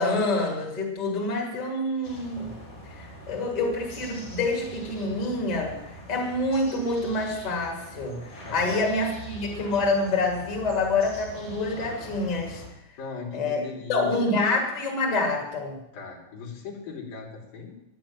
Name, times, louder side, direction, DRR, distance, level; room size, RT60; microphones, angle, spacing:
voice 1, 0.0-2.6 2.8-12.6 13.3-13.6 13.9-15.8, left 2 dB, 75° left, 0 dB, 0.3 m, -27 dB
sound 1, 2.0-12.7, equal, 25° left, 4.7 m, -43 dB
voice 2, 8.4-8.9 13.0-14.1 15.9-17.7, left 5 dB, 50° left, -1 dB, 4.2 m, -38 dB
11.5 x 10.5 x 8.8 m, 0.86 s
omnidirectional pair, 5.8 m